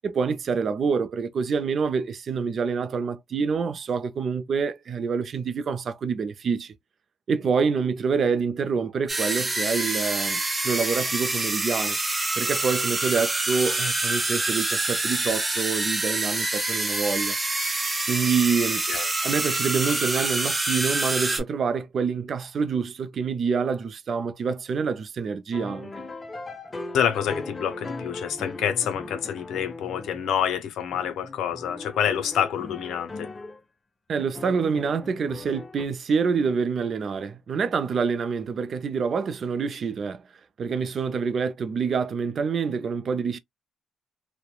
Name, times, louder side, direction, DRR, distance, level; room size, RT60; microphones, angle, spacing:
voice 1, 0.0-6.7 7.3-12.0 12.4-17.3 18.1-18.8 19.2-25.9 34.1-40.2 40.6-43.4, right 5 dB, 50° right, 0.4 m, -26 dB
sound 1, 9.1-21.4, right 2 dB, 20° right, 0.7 m, -26 dB
sound 2, 25.5-30.6 30.9-33.6 34.3-35.8, left 2 dB, 25° left, 0.5 m, -38 dB
voice 2, 26.9-33.3, left 9 dB, 80° left, 0.5 m, -27 dB
3.0 x 2.1 x 2.2 m
cardioid pair, 90°, 0 cm